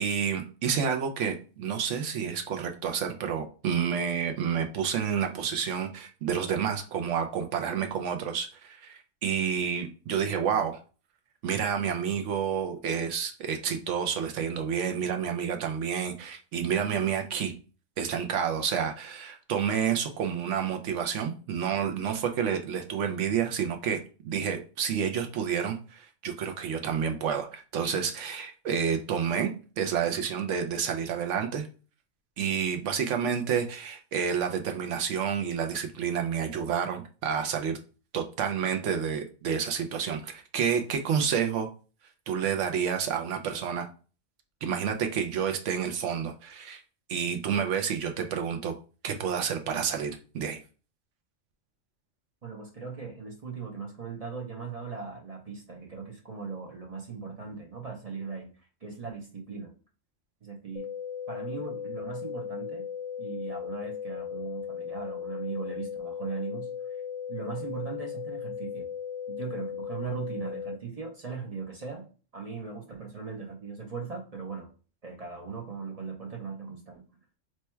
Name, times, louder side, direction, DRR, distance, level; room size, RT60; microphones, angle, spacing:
voice 1, 0.0-10.8 11.4-17.5 18.0-29.5 29.8-31.7 32.4-37.8 38.1-41.7 42.3-43.9 44.6-46.8 47.1-48.7 49.0-50.6, right 7 dB, 75° right, 5 dB, 0.9 m, -29 dB
voice 2, 52.4-58.5 58.8-59.7 60.4-60.9 61.3-62.9 63.2-67.0 67.3-68.9 69.3-74.7 75.0-77.0, right 5 dB, 40° right, 1 dB, 0.6 m, -39 dB
sound 1, 60.8-70.8, left 8 dB, 80° left, 0.9 m, -37 dB
3.1 x 2.2 x 4.2 m, 0.36 s
omnidirectional pair, 1.3 m